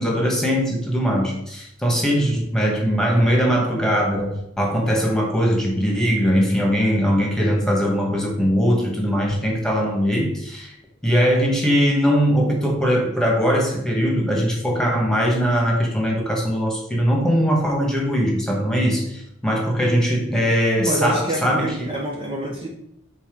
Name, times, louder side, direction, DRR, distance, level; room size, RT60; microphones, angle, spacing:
voice 1, 0.0-10.7 11.0-21.9, equal, 5° left, -1 dB, 1.8 m, -20 dB
voice 2, 20.8-22.7, right 1 dB, 25° right, -2 dB, 1.1 m, -26 dB
7.1 x 4.3 x 5.4 m, 0.77 s
head